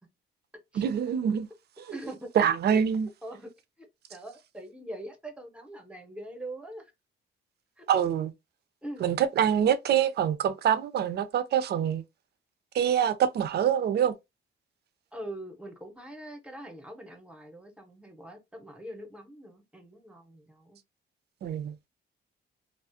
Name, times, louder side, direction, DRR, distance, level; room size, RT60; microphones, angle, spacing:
voice 1, 0.7-1.5 1.9-2.0 2.4-3.1 7.9-8.3 9.0-12.0 12.7-14.1 21.4-21.8, right 9 dB, 55° right, 0.4 m, -25 dB
voice 2, 1.9-2.3 2.7-2.8 3.2-3.5 3.8-6.9 7.8-7.9 8.8-9.1 15.1-20.8, right 1 dB, 5° right, 0.7 m, -43 dB
2.3 x 2.0 x 2.5 m
cardioid pair, 90°, 20 cm